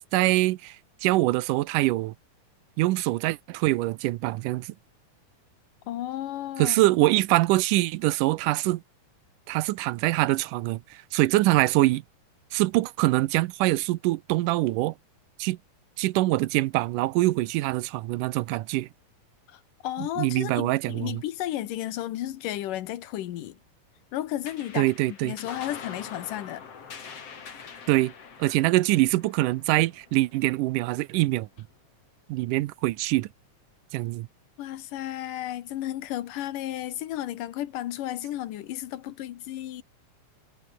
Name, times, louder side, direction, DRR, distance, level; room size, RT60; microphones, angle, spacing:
voice 1, 0.1-2.1 2.8-4.7 6.6-8.8 9.5-12.0 12.5-14.9 15.4-15.6 16.0-18.9 20.0-21.2 24.8-25.4 27.9-28.1 28.4-31.5 32.3-33.3 33.9-34.3, right 18 dB, 85° right, 2.3 m, -24 dB
voice 2, 5.9-6.8 19.5-23.6 24.1-26.6 28.4-28.6 34.6-39.8, left 13 dB, 80° left, 2.8 m, -33 dB
sound 1, 24.4-31.2, left 6 dB, 50° left, 3.7 m, -45 dB
omnidirectional pair, 3.8 m